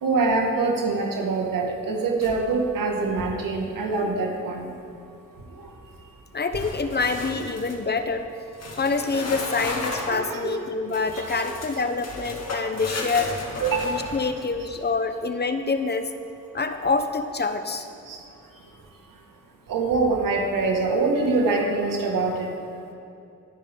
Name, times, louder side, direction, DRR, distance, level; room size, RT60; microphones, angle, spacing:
voice 1, 0.0-4.7 7.4-7.5 10.1-10.6 11.1-11.5 13.6-13.9 18.1-18.2 19.7-22.5, right 3 dB, 85° right, 1 dB, 2.1 m, -24 dB
sound 1, 2.2-2.7 3.0-3.4 6.5-7.8 8.5-10.2 10.9-14.8, left 2 dB, 50° left, 1.9 m, -34 dB
voice 2, 6.3-8.3 8.8-13.3 13.8-16.1 16.5-17.9, left 4 dB, 30° left, 8 dB, 0.8 m, -26 dB
21.5 x 10.0 x 3.9 m, 2.6 s
cardioid pair, 95°, 32 cm